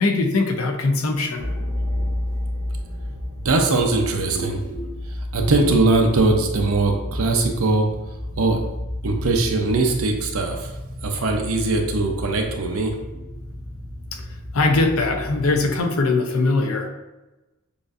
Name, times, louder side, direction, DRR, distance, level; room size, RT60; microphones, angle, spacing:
voice 1, 0.0-1.5 14.1-14.2 14.5-16.9, left 3 dB, 85° left, 4 dB, 0.6 m, -21 dB
sound 1, 1.4-15.8, left 1 dB, 35° right, 0.8 m, -31 dB
voice 2, 3.4-4.9 5.3-7.9 8.4-8.6 9.0-10.7 11.0-13.0, right 3 dB, 85° right, 3 dB, 0.7 m, -21 dB
6.7 x 2.6 x 2.6 m, 1.0 s
head